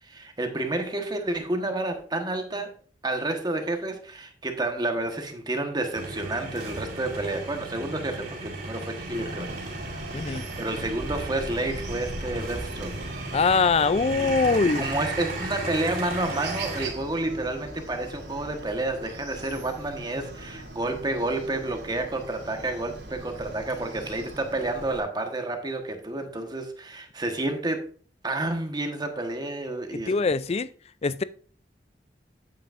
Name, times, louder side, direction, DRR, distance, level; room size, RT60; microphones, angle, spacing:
voice 1, 0.0-2.7 3.0-12.9 13.2-13.7 13.9-14.4 14.7-27.9 28.2-30.2, right 2 dB, 25° right, 1.3 m, -30 dB
sound 1, 5.9-16.9, right 2 dB, 55° right, 2.9 m, -35 dB
Chicken rooster, 9.1-25.0, right 2 dB, 85° right, 3.0 m, -41 dB
voice 2, 10.1-10.4 13.3-14.9 30.1-30.7 31.0-31.2, left 4 dB, 35° left, 0.4 m, -22 dB
10.0 x 9.0 x 2.6 m
head